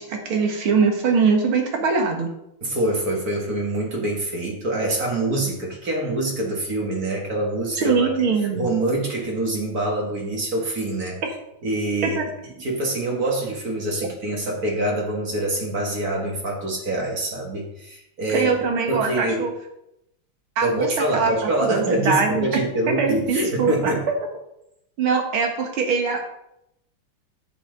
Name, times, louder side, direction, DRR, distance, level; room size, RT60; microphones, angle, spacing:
voice 1, 0.0-2.3 7.8-8.7 12.0-12.3 18.3-19.5 20.6-20.9 21.1-22.5 22.9-23.9 25.0-26.2, right 5 dB, 85° right, 3 dB, 2.4 m, -22 dB
voice 2, 2.6-8.1 8.6-11.2 11.6-12.2 12.6-19.5 20.6-24.0, right 1 dB, 45° right, -1 dB, 2.1 m, -25 dB
10.0 x 8.5 x 3.9 m, 0.82 s
omnidirectional pair, 2.2 m